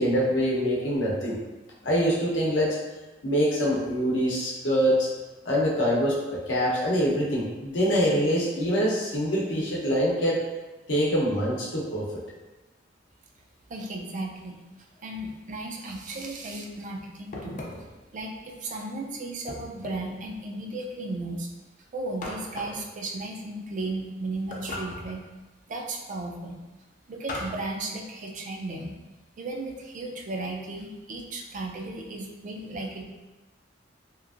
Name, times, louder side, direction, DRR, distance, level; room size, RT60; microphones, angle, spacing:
voice 1, 0.0-1.4 1.8-2.8 3.2-5.1 5.4-10.4 10.9-12.0, equal, 75° left, -5 dB, 0.8 m, -24 dB
voice 2, 13.7-17.6 18.1-21.5 21.9-25.2 25.7-26.6 27.1-28.9 29.4-33.0, right 2 dB, 45° right, 1 dB, 0.4 m, -35 dB
sound 1, 17.3-18.0 19.5-20.2 22.2-22.9 24.5-25.2 27.3-27.7, left 1 dB, 45° left, 0.4 m, -38 dB
3.0 x 2.5 x 2.4 m, 1.1 s
head